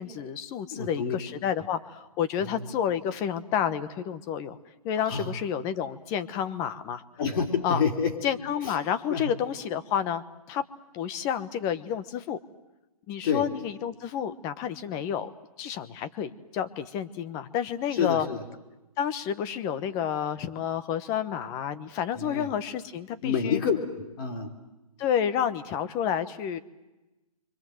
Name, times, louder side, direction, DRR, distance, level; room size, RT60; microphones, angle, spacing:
voice 1, 0.0-4.6 4.8-7.0 7.6-7.8 8.2-10.6 10.9-12.4 13.1-15.3 15.6-18.3 19.0-23.6 25.0-26.6, left 9 dB, 20° left, 12 dB, 1.0 m, -30 dB
voice 2, 0.7-1.2 2.4-2.7 5.1-5.4 7.2-8.1 8.6-8.8 9.1-9.3 13.2-13.4 17.9-18.4 22.2-22.5 23.2-24.5, left 6 dB, 35° left, 4 dB, 3.3 m, -28 dB
30.0 x 24.5 x 7.8 m, 1.0 s
hypercardioid pair, 160°, 19 cm